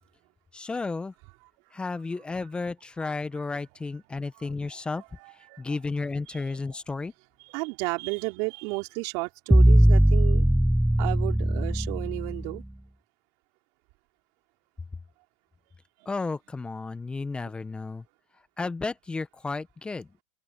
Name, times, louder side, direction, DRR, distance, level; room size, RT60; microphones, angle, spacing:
voice 1, 0.5-1.1 1.7-5.0 5.6-7.1 16.0-18.0 18.6-20.1, left 3 dB, 15° left, 1.2 m, -33 dB
voice 2, 4.4-4.8 5.2-5.8 6.3-6.6 7.5-10.4 11.0-12.6, right 28 dB, 60° right, 3.7 m, -33 dB
sound 1, 9.5-12.6, right 1 dB, ahead, 0.7 m, -20 dB
open air
hypercardioid pair, 95°, 7 cm